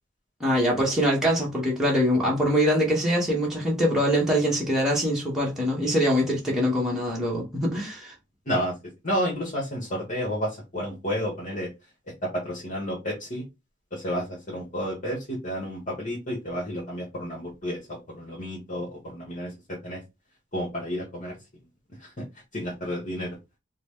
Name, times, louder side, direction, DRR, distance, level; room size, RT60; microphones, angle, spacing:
voice 1, 0.4-8.1, equal, ahead, 1.1 m, -23 dB
voice 2, 8.5-8.8 9.0-11.7 12.2-13.4 13.9-20.0 20.5-21.4 22.0-22.2 22.5-23.4, equal, 45° left, 1.1 m, -31 dB
3.8 x 2.1 x 3.5 m
head